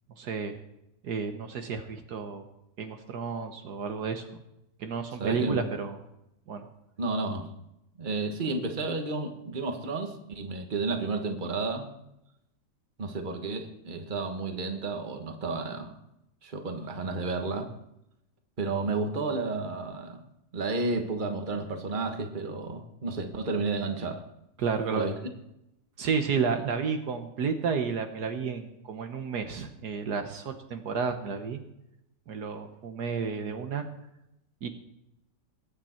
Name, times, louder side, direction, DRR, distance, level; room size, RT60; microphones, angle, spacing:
voice 1, 0.2-0.5 1.0-2.5 2.8-4.3 4.8-6.0 6.5-6.7 24.6-25.1 26.0-31.6 32.3-33.8 34.6-34.7, right 5 dB, 65° right, 6 dB, 1.5 m, -31 dB
voice 2, 5.2-5.6 7.0-7.5 8.0-11.9 13.0-15.9 16.4-17.7 18.6-20.2 20.5-24.2 24.9-25.1, right 3 dB, 30° right, 5 dB, 1.4 m, -31 dB
21.5 x 8.9 x 4.4 m, 0.85 s
omnidirectional pair, 1.9 m